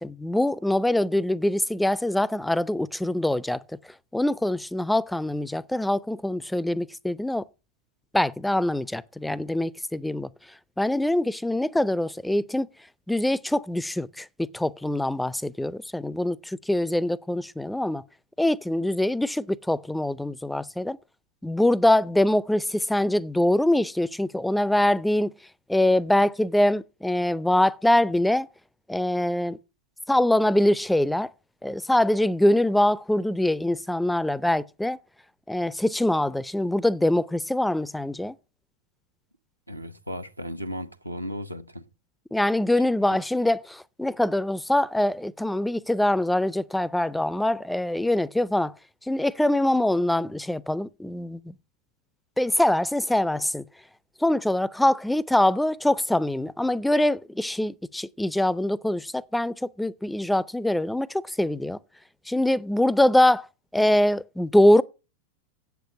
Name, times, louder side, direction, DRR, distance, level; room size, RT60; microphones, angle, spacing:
voice 1, 0.0-3.6 4.1-7.4 8.1-10.3 10.8-12.7 13.1-18.0 18.4-21.0 21.4-25.3 25.7-28.5 28.9-29.6 30.1-31.3 31.6-35.0 35.5-38.4 42.3-48.7 49.1-51.5 52.4-53.6 54.2-61.8 62.3-63.5 63.7-64.8, left 1 dB, 5° left, 0.5 m, -23 dB
voice 2, 39.7-41.8, equal, 85° right, 1.0 m, -35 dB
8.2 x 8.1 x 7.1 m
figure-of-eight pair, 90°, 0 cm